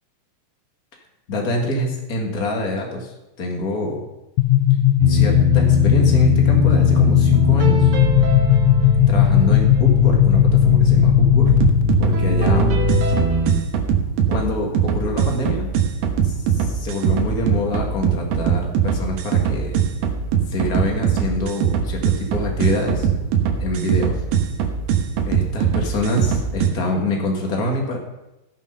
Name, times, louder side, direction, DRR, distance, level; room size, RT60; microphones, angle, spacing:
voice 1, 1.3-4.0 5.1-7.9 9.1-11.5 12.0-12.8 14.3-15.7 16.2-19.7 20.5-23.1 23.6-24.2 25.2-28.0, left 1 dB, 40° left, 0 dB, 1.3 m, -25 dB
sound 1, 4.4-11.9, left 13 dB, 90° left, 1.9 m, -16 dB
sound 2, 5.0-13.6, left 1 dB, 70° right, 3.2 m, -21 dB
sound 3, 11.5-26.7, right 8 dB, 90° right, 3.1 m, -21 dB
15.5 x 5.8 x 5.5 m, 0.97 s
omnidirectional pair, 4.4 m